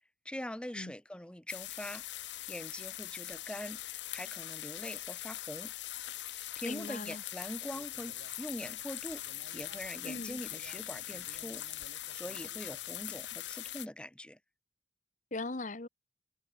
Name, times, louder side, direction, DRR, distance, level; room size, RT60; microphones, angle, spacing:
voice 1, 0.2-5.7 6.2-9.2 9.5-14.4, left 1 dB, 5° left, 0.6 m, -43 dB
sound 1, 1.5-13.9, left 14 dB, 80° left, 1.4 m, -42 dB
voice 2, 6.7-7.2 10.0-10.4 15.3-15.9, left 2 dB, 45° left, 1.2 m, -39 dB
sound 2, 7.7-13.3, right 1 dB, 60° right, 7.6 m, -59 dB
head